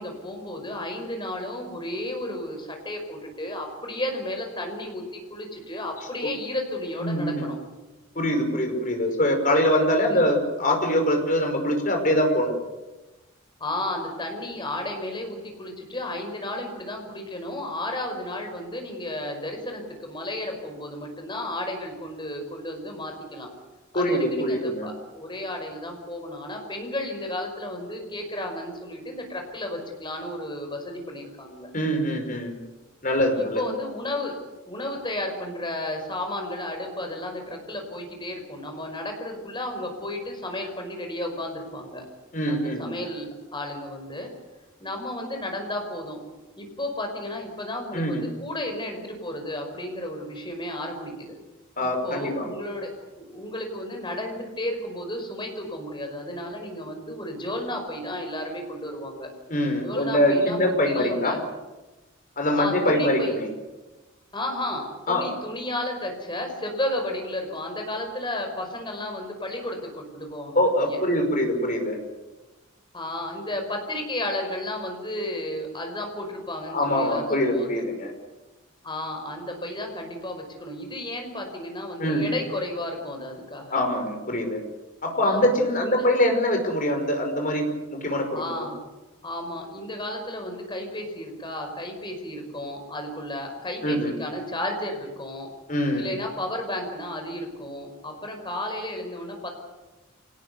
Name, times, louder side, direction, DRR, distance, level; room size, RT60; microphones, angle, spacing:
voice 1, 0.0-7.6 10.0-10.2 13.6-23.5 23.9-31.7 33.4-34.4 34.7-42.0 42.5-44.3 44.8-46.2 46.6-51.3 51.8-52.9 53.2-59.3 59.8-61.4 62.6-63.4 64.3-71.0 72.9-77.8 78.8-83.8 85.2-85.4 85.8-86.1 88.3-88.8 89.2-95.5 96.0-99.5, left 1 dB, 20° left, 4 dB, 5.3 m, -33 dB
voice 2, 7.0-7.5 8.2-12.5 23.9-24.9 31.7-32.5 33.0-33.6 42.3-42.9 47.9-48.3 51.8-52.5 59.5-61.4 62.4-63.5 65.1-65.3 70.6-72.0 76.7-78.1 82.0-82.3 83.7-84.6 85.0-88.3 88.6-88.7 93.8-94.1 95.7-96.1, left 1 dB, 40° left, 4 dB, 5.4 m, -23 dB
25.5 x 19.0 x 8.2 m, 1.1 s
head